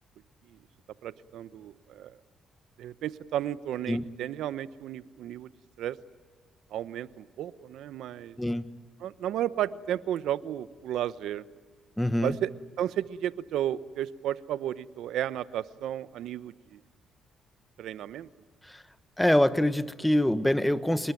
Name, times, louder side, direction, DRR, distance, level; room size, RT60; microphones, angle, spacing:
voice 1, 1.0-2.1 2.8-5.5 5.8-6.0 6.7-8.4 9.0-11.4 12.2-12.5 12.8-16.8 17.8-18.3, right 11 dB, 80° right, 15 dB, 0.9 m, -33 dB
voice 2, 12.0-12.3 19.2-21.1, left 1 dB, 5° left, 12 dB, 1.3 m, -24 dB
26.5 x 21.5 x 9.2 m, 1.5 s
cardioid pair, 90°, 0 cm